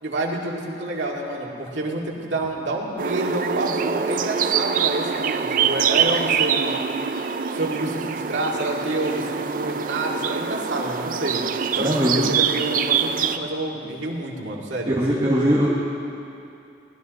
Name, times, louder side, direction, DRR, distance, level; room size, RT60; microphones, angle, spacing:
voice 1, 0.0-6.7 7.5-11.4 11.8-15.0, right 2 dB, 90° right, -2 dB, 2.1 m, -28 dB
sound 1, 3.0-13.4, right 7 dB, 45° right, 0.4 m, -24 dB
voice 2, 11.8-12.3 14.9-15.7, equal, 25° right, -6 dB, 1.4 m, -20 dB
20.0 x 13.0 x 4.1 m, 2.6 s
head